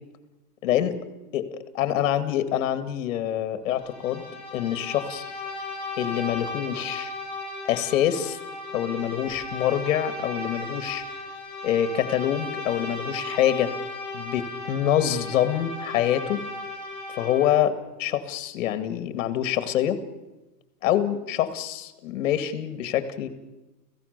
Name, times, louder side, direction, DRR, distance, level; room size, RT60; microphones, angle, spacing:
voice 1, 0.6-1.0 1.3-4.2 4.5-5.3 6.0-7.1 7.7-8.4 8.7-11.0 11.6-13.7 14.1-16.4 17.1-17.7 18.0-20.0 20.8-23.3, left 11 dB, 50° left, 11 dB, 2.2 m, -25 dB
Bowed string instrument, 3.7-17.6, left 2 dB, 10° left, 7.6 m, -36 dB
30.0 x 16.0 x 6.8 m, 1.1 s
supercardioid pair, 170°, 49 cm